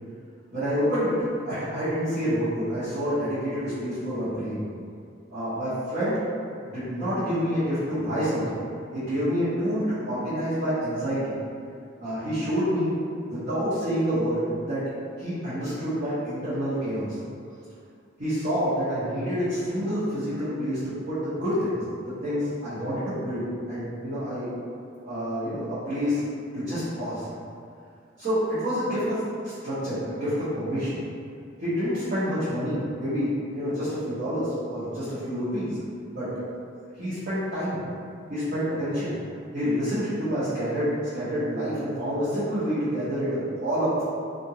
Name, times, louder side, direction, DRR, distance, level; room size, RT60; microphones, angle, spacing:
voice 1, 0.5-4.6 5.3-6.2 6.7-8.6 8.9-11.3 12.0-12.9 13.3-14.8 15.2-17.1 18.2-21.8 22.2-24.5 25.0-26.2 26.5-27.3 28.2-31.0 31.6-35.8 36.1-36.3 37.0-37.8 38.3-39.1 39.5-44.1, equal, 45° right, -16 dB, 1.1 m, -28 dB
2.8 x 2.5 x 2.8 m, 2.4 s
head